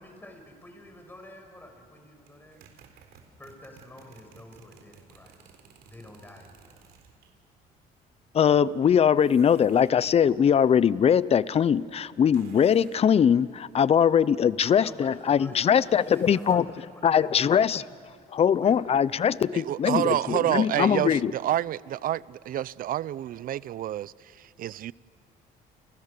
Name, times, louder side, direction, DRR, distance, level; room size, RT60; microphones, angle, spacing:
voice 1, 0.0-2.6 3.4-5.5 5.8-6.8 14.8-17.7 18.5-18.8, left 1 dB, 10° left, 5.7 m, -48 dB
sound 1, 2.3-7.3 9.2-10.0 12.3-13.1 15.8-16.7, right 7 dB, 75° right, 4.0 m, -55 dB
voice 2, 8.3-16.7 17.0-17.8 18.3-21.3, left 8 dB, 35° left, 0.7 m, -21 dB
voice 3, 19.5-24.9, right 12 dB, 55° right, 0.6 m, -29 dB
30.0 x 29.5 x 6.8 m
cardioid pair, 110°, 17 cm